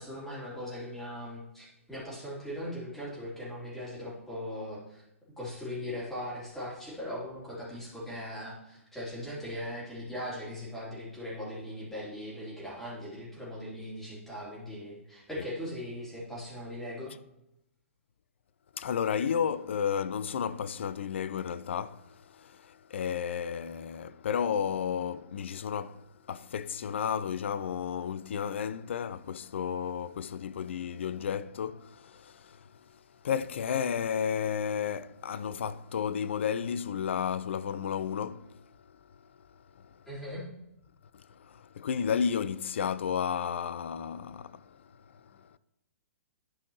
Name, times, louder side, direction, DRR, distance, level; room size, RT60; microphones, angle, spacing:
voice 1, 0.0-5.0 5.4-17.1 40.1-40.4, left 1 dB, 5° left, 3.1 m, -39 dB
voice 2, 18.7-32.6 33.2-38.7 39.8-39.9 41.4-44.8 45.1-45.6, left 7 dB, 55° left, 0.4 m, -32 dB
11.5 x 5.1 x 3.0 m
figure-of-eight pair, 115°, 8 cm